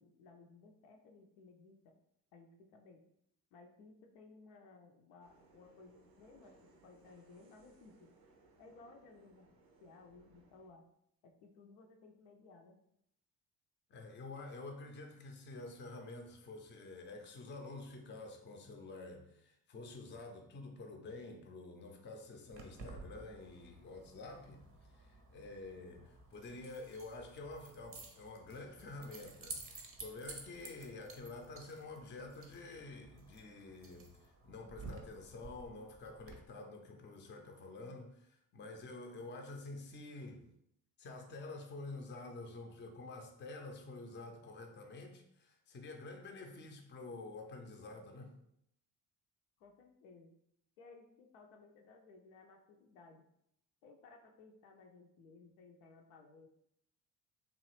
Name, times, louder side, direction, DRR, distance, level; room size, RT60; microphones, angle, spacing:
voice 1, 0.0-1.9 2.3-3.0 3.5-8.1 8.6-9.5 9.8-10.8 11.2-12.8 49.6-50.3 50.8-53.2 53.8-56.5, left 3 dB, 65° left, 3 dB, 0.6 m, -59 dB
sound 1, 5.2-10.7, right 3 dB, 80° right, 0.6 m, -66 dB
voice 2, 13.9-24.6 24.9-40.4 41.0-48.3, left 2 dB, 25° left, 3 dB, 0.5 m, -49 dB
Keys jangling, 22.5-36.3, right 3 dB, 30° right, 0.6 m, -53 dB
2.9 x 2.3 x 3.1 m, 0.76 s
figure-of-eight pair, 45°, 49 cm